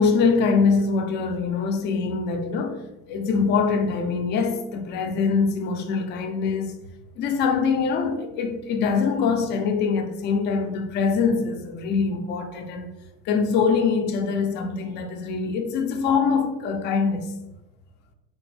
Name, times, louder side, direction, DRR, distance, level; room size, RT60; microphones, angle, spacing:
voice 1, 0.0-2.8 3.1-6.7 7.2-12.9 13.3-17.3, left 5 dB, 35° left, 0.4 m, -23 dB
3.3 x 2.1 x 3.2 m
supercardioid pair, 130°, 33 cm